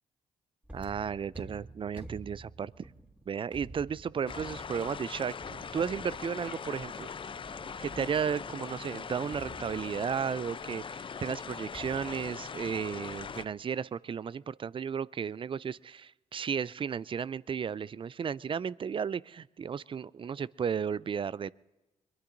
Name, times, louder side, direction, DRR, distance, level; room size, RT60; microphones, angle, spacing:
sound 1, 0.6-8.6 9.3-10.3 11.7-13.0 13.3-13.7, right 2 dB, 10° right, 2.9 m, -50 dB
voice 1, 0.7-2.9 3.3-7.1 7.8-21.5, right 7 dB, 35° right, 21 dB, 0.4 m, -34 dB
sound 2, 4.3-13.4, left 6 dB, 35° left, 0.6 m, -41 dB
22.5 x 22.5 x 2.7 m, 1.1 s
supercardioid pair, 50°, 14 cm